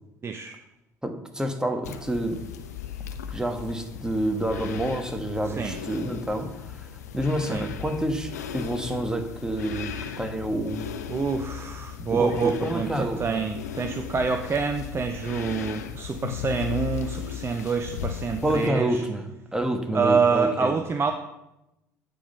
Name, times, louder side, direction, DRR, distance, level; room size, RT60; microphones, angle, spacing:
voice 1, 0.2-0.5 5.6-5.8 7.5-7.6 11.1-19.0 19.9-21.1, right 5 dB, 30° right, 6 dB, 0.7 m, -26 dB
voice 2, 1.0-2.4 3.3-6.9 7.1-10.9 12.1-13.4 18.4-20.8, right 1 dB, 10° right, 5 dB, 1.3 m, -28 dB
sound 1, 1.8-18.7, left 9 dB, 80° left, 0.5 m, -36 dB
8.7 x 5.1 x 5.4 m, 0.90 s
figure-of-eight pair, 55°, 9 cm